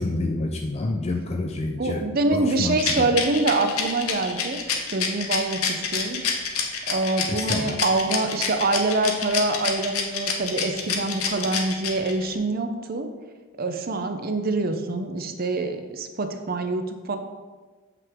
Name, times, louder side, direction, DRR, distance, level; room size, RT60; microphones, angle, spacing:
voice 1, 0.0-2.0 2.3-2.8 7.3-7.6, left 2 dB, 30° left, 2 dB, 0.4 m, -27 dB
voice 2, 1.7-4.6 4.9-6.2 6.6-13.1 13.6-17.2, right 2 dB, 40° right, 7 dB, 0.6 m, -25 dB
Rattle, 2.8-12.3, left 7 dB, 75° left, 1.0 m, -27 dB
7.7 x 5.8 x 3.6 m, 1.4 s
head